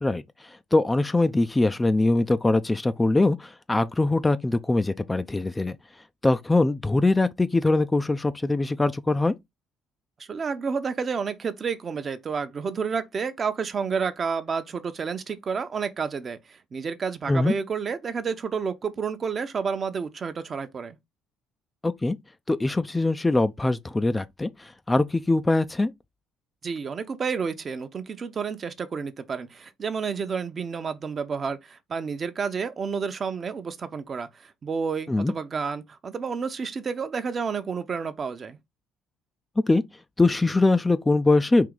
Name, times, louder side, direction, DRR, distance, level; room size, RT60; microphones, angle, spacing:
voice 1, 0.0-5.8 6.2-9.3 17.3-17.5 21.8-22.2 22.5-25.9 35.1-35.3 39.6-39.8 40.2-41.7, left 2 dB, 15° left, 0.4 m, -22 dB
voice 2, 10.2-21.0 26.6-38.6, right 5 dB, 40° right, 0.8 m, -30 dB
4.7 x 2.8 x 3.8 m
supercardioid pair, 75°, 0 cm